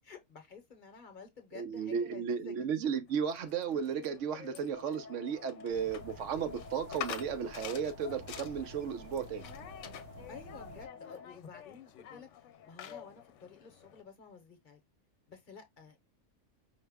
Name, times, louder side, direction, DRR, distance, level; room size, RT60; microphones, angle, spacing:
voice 1, 0.0-2.6 10.3-12.3 12.7-14.8 15.3-16.0, left 5 dB, 45° left, 0.8 m, -51 dB
voice 2, 1.5-9.5, right 7 dB, 80° right, 1.0 m, -34 dB
sound 1, 3.1-14.0, left 10 dB, 75° left, 0.9 m, -48 dB
sound 2, 4.7-11.2, left 4 dB, 20° left, 0.5 m, -51 dB
sound 3, 5.7-10.9, right 1 dB, 60° right, 1.1 m, -52 dB
5.3 x 2.1 x 3.5 m
omnidirectional pair, 1.3 m